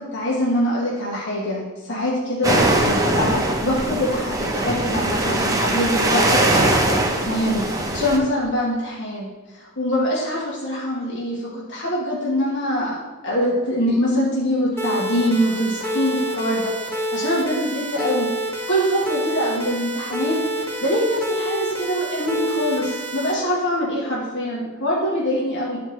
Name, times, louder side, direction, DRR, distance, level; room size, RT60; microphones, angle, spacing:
voice 1, 0.0-9.3 9.5-13.0 13.2-20.4 20.8-25.8, equal, 60° left, -6 dB, 1.3 m, -24 dB
sound 1, 2.4-8.2, right 1 dB, 15° right, 0.8 m, -21 dB
sound 2, 14.8-23.3, right 1 dB, 10° left, 1.3 m, -28 dB
11.0 x 4.4 x 3.1 m, 1.2 s
head